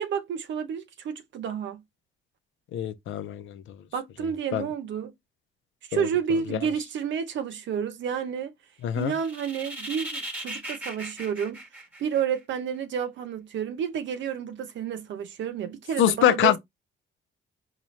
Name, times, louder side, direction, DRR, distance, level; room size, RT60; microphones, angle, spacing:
voice 1, 0.0-1.8 3.9-5.1 5.9-8.5 9.0-11.6 12.0-16.6, right 7 dB, 70° right, 0.7 m, -30 dB
voice 2, 2.7-3.6 4.5-4.7 5.9-6.1 6.5-6.6 8.8-9.1 16.0-16.6, left 11 dB, 80° left, 0.7 m, -24 dB
sound 1, 9.0-12.6, right 1 dB, 10° right, 1.2 m, -38 dB
4.1 x 2.4 x 3.1 m
cardioid pair, 90°, 20 cm